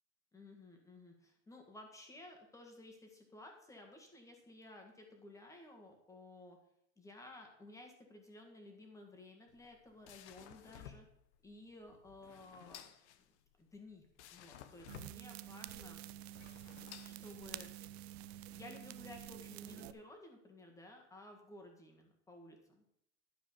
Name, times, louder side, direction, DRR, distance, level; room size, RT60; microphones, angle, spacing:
voice 1, 0.3-6.6 7.0-11.1 11.4-12.9 13.6-16.0 17.2-17.7 18.4-22.8, left 2 dB, 10° left, 3 dB, 1.8 m, -55 dB
sound 1, 9.5-17.8, left 10 dB, 65° left, 1.1 m, -56 dB
sound 2, 14.9-19.9, right 13 dB, 60° right, 0.7 m, -49 dB
12.0 x 5.0 x 6.9 m, 0.74 s
supercardioid pair, 150°, 36 cm